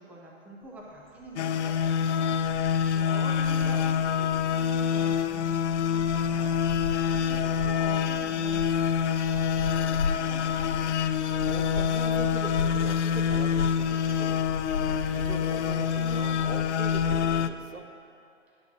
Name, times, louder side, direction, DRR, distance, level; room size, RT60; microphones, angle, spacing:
voice 1, 0.0-10.5, right 1 dB, 5° right, -2 dB, 0.6 m, -46 dB
sound 1, 0.7-0.8 0.9-17.5, left 4 dB, 85° left, 1.7 m, -36 dB
sound 2, 1.4-17.5, left 7 dB, 60° left, 0.5 m, -26 dB
voice 2, 3.5-3.9 11.5-14.4 15.1-17.9, right 4 dB, 85° right, 6 dB, 1.0 m, -41 dB
10.5 x 5.8 x 6.1 m, 2.5 s
figure-of-eight pair, 130°, 39 cm